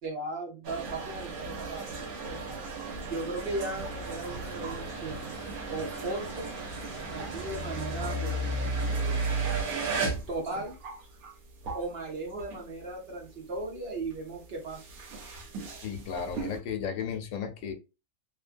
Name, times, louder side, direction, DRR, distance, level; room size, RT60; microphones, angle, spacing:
voice 1, 0.0-2.4 3.1-5.3 5.7-6.6 7.1-8.6 8.9-9.3 10.3-10.8 11.7-14.8, right 2 dB, 55° right, 0.8 m, -37 dB
sound 1, 0.6-12.9 13.2-16.6, right 4 dB, 80° right, 1.2 m, -37 dB
Truck / Idling, 3.5-9.6, right 1 dB, 40° left, 0.5 m, -35 dB
voice 2, 15.8-17.7, left 7 dB, 70° left, 0.9 m, -34 dB
2.8 x 2.2 x 2.4 m
omnidirectional pair, 1.5 m